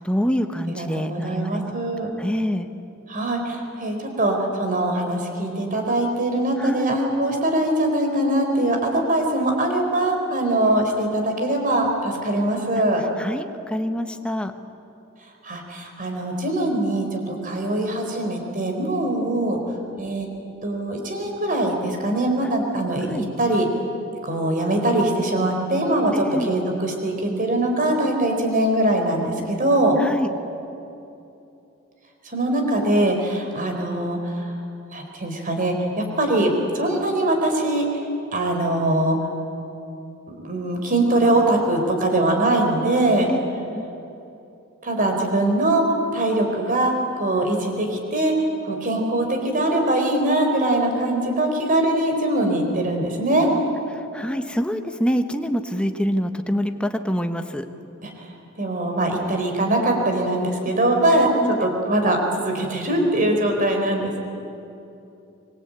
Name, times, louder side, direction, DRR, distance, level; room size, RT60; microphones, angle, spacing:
voice 1, 0.0-1.6 2.2-2.7 6.6-7.0 13.2-14.5 23.0-23.3 26.1-26.5 30.0-30.3 43.3-43.4 43.7-43.9 54.1-57.6 61.4-61.7, equal, 5° left, 6 dB, 1.1 m, -25 dB
voice 2, 0.7-2.1 3.1-13.0 15.4-19.6 20.0-20.3 20.6-23.7 24.2-30.0 32.3-34.4 34.9-37.9 38.3-39.2 40.3-43.3 44.8-45.8 46.1-48.3 48.7-53.5 58.0-58.1 58.6-64.2, right 1 dB, 40° right, 3 dB, 4.3 m, -22 dB
25.0 x 22.0 x 8.9 m, 2.8 s
head